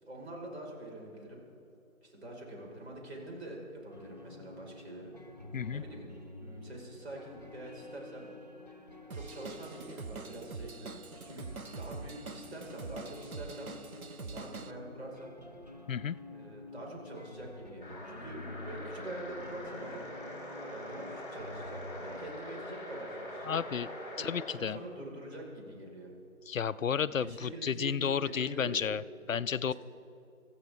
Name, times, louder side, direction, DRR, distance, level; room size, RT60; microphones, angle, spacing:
voice 1, 0.0-1.4 2.0-5.1 5.7-6.1 6.4-8.3 9.1-10.9 11.2-11.5 11.8-13.7 14.2-15.3 16.3-18.4 18.7-20.0 20.7-23.6 24.2-26.1 27.0-28.8 29.6-29.7, right 1 dB, 50° right, -2 dB, 4.9 m, -45 dB
sound 1, 3.9-22.4, left 2 dB, 30° right, 0.7 m, -50 dB
voice 2, 5.5-5.8 15.9-16.2 23.4-23.9 24.2-24.8 26.5-29.0 29.3-29.7, left 7 dB, 70° left, 16 dB, 0.5 m, -32 dB
Drum kit / Drum, 9.1-14.7, right 4 dB, 85° right, 1.1 m, -44 dB
sound 2, 17.8-24.6, equal, 35° left, 4.6 m, -43 dB
26.0 x 14.5 x 3.5 m, 2.7 s
figure-of-eight pair, 170°, 42 cm